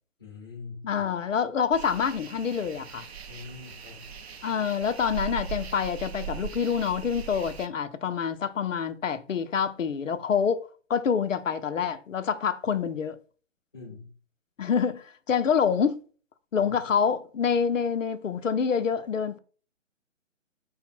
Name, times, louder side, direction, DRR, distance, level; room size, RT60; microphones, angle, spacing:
voice 1, 0.2-1.1 3.3-4.1 4.5-4.6 13.7-14.1 16.6-17.1, left 4 dB, 20° left, 0.5 m, -44 dB
voice 2, 0.8-3.1 4.4-13.2 14.6-16.0 16.5-19.4, left 7 dB, 80° left, 0.5 m, -27 dB
sound 1, 1.7-7.7, right 6 dB, 55° right, 0.5 m, -39 dB
3.4 x 2.1 x 4.1 m
figure-of-eight pair, 135°, 38 cm